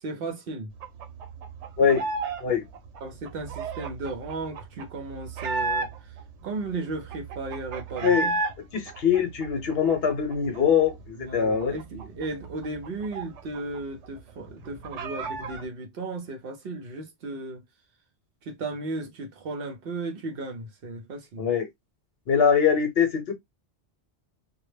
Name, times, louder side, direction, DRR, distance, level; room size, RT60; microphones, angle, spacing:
voice 1, 0.0-0.7 3.0-6.1 6.4-8.4 11.2-17.6 18.4-21.4, right 2 dB, 60° right, 0.7 m, -35 dB
sound 1, 0.8-2.4 2.7-6.2 6.6-6.7 6.9-8.5 8.9-10.6 10.9-11.0 11.3-13.8 14.0-14.1 14.5-15.6, right 3 dB, 90° right, 0.9 m, -32 dB
voice 2, 1.8-2.1 2.4-2.6 8.0-8.3 8.7-11.8 21.4-21.7 22.3-23.3, left 7 dB, 65° left, 0.9 m, -23 dB
2.2 x 2.0 x 3.0 m
omnidirectional pair, 1.2 m